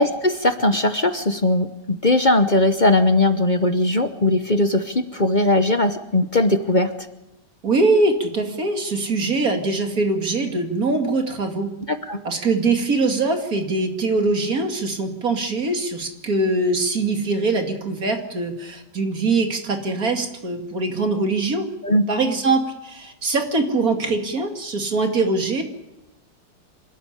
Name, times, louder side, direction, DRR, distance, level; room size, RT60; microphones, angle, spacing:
voice 1, 0.0-6.9 11.9-12.2 21.8-22.1, left 2 dB, 35° left, 9 dB, 0.9 m, -19 dB
voice 2, 7.6-11.7 12.2-21.7 22.1-25.6, right 3 dB, 55° right, 4 dB, 2.8 m, -22 dB
26.5 x 13.0 x 9.9 m, 0.98 s
omnidirectional pair, 1.8 m